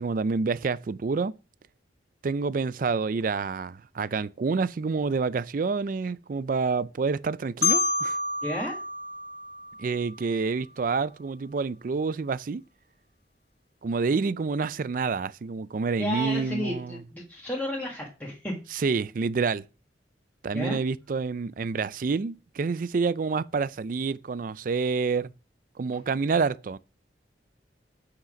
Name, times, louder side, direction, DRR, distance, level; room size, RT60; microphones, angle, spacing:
voice 1, 0.0-1.3 2.2-8.2 9.8-12.6 13.8-17.0 18.7-19.6 20.4-25.3 25.8-26.8, right 4 dB, 50° right, 0.4 m, -28 dB
Marimba xylophone, 7.6-10.5, left 4 dB, 65° left, 1.9 m, -29 dB
voice 2, 8.4-8.8 16.0-18.5 20.5-20.8, equal, 10° left, 1.7 m, -32 dB
8.2 x 5.8 x 5.1 m
head